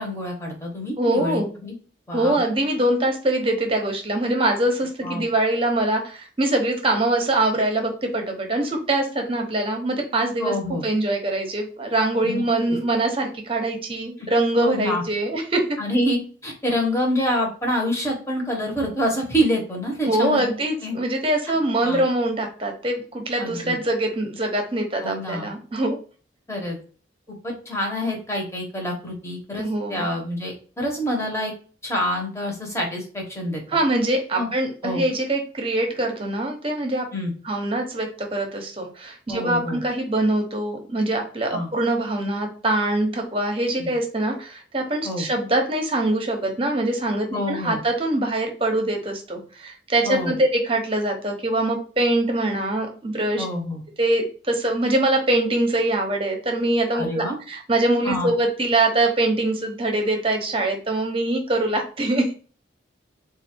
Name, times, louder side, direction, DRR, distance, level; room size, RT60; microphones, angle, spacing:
voice 1, 0.0-1.8 2.1-2.4 5.0-5.2 10.4-10.8 12.2-12.8 14.6-15.0 15.8-20.5 20.8-21.0 21.8-22.0 23.4-23.8 25.0-25.5 26.5-26.8 27.4-31.5 31.8-33.6 34.3-34.5 34.8-35.1 37.1-37.3 39.3-39.8 41.5-41.7 43.8-43.9 45.0-45.3 47.3-47.8 50.0-50.3 53.4-53.8 56.9-57.4 58.0-58.3, equal, 15° left, -1 dB, 1.1 m, -27 dB
voice 2, 1.0-1.5 2.1-15.8 20.0-26.0 29.6-30.1 33.7-37.1 37.4-53.4 54.0-62.3, right 1 dB, 30° right, 3 dB, 0.9 m, -23 dB
4.0 x 2.5 x 4.4 m, 0.39 s
head